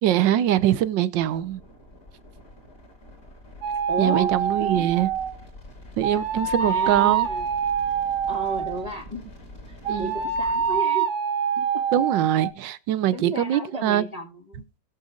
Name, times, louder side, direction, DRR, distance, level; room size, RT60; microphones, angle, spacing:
voice 1, 0.0-1.6 4.0-5.1 6.0-7.3 9.9-10.1 11.9-14.0, right 12 dB, 85° right, 1.5 m, -23 dB
sound 1, 1.2-10.8, left 1 dB, 45° left, 4.5 m, -45 dB
sound 2, 3.6-5.4 6.0-8.9 9.8-12.5, right 7 dB, 65° right, 1.6 m, -25 dB
voice 2, 3.9-4.3 4.6-4.9 6.6-7.5 8.3-9.2 10.0-11.1 11.6-11.8 13.1-14.6, right 1 dB, 20° left, 1.7 m, -33 dB
20.0 x 7.0 x 2.4 m
omnidirectional pair, 2.0 m